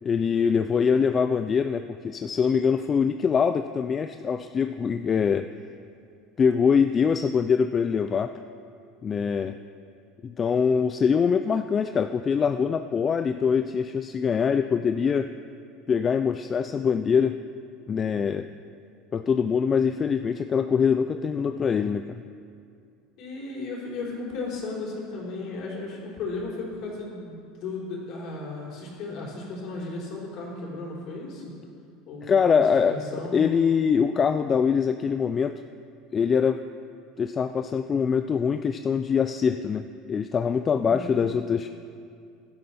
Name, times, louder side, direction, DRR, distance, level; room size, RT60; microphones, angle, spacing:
voice 1, 0.0-5.5 6.4-8.4 9.0-9.6 10.2-15.3 15.9-17.4 17.9-18.5 19.1-22.2 32.2-33.0 33.3-35.6 36.1-36.6 37.2-41.7, left 6 dB, 25° left, 9 dB, 0.4 m, -23 dB
voice 2, 23.2-31.4 32.1-32.6 32.9-33.4 40.8-41.3, left 3 dB, 55° left, -3 dB, 4.0 m, -35 dB
15.5 x 11.5 x 4.2 m, 2.4 s
supercardioid pair, 130°, 0 cm